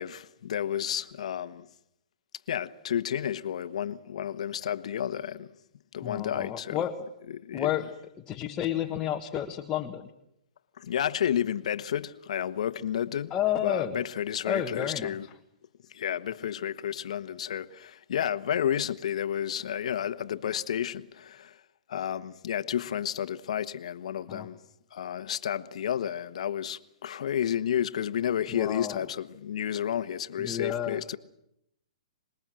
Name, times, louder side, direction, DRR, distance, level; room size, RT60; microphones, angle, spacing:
voice 1, 0.0-1.7 2.5-5.5 5.9-6.8 7.3-7.7 10.8-15.3 15.9-21.6 21.9-24.6 24.9-31.2, left 9 dB, 65° left, 1.3 m, -31 dB
voice 2, 6.0-7.0 7.5-7.8 8.3-10.1 13.3-14.0 14.4-15.1 24.3-24.5 28.5-29.0 30.4-31.0, left 10 dB, 20° left, 1.5 m, -31 dB
26.0 x 21.0 x 7.7 m
hypercardioid pair, 145°, 4 cm